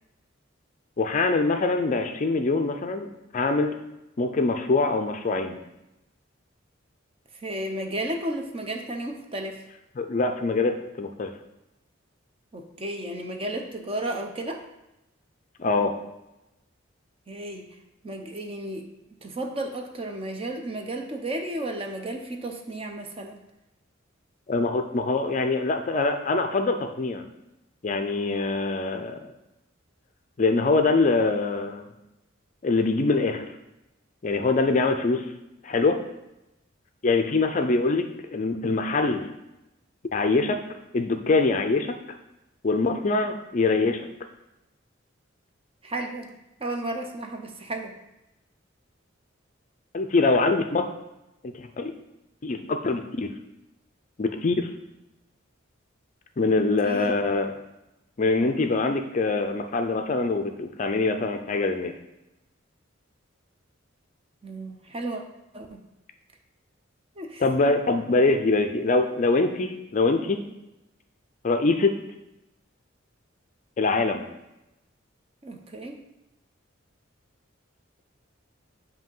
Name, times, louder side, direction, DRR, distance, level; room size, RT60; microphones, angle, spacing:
voice 1, 1.0-3.8 4.2-5.6 10.0-11.3 15.6-15.9 24.5-27.2 27.8-29.2 30.4-31.9 32.6-33.5 34.2-35.2 35.6-36.0 37.0-39.3 40.1-40.6 40.9-41.9 42.6-44.0 49.9-50.9 51.4-51.9 52.4-53.3 54.2-54.7 56.4-57.5 58.2-61.9 67.4-70.4 71.4-71.9 73.8-74.3, left 3 dB, 35° left, 6 dB, 0.4 m, -24 dB
voice 2, 7.3-9.6 12.5-14.6 17.3-17.8 18.0-18.9 19.2-23.4 45.8-47.9 56.8-57.2 64.4-65.2 65.5-65.8 67.2-67.4 75.4-76.0, right 1 dB, 30° right, 3 dB, 0.6 m, -33 dB
7.8 x 2.8 x 5.4 m, 0.93 s
head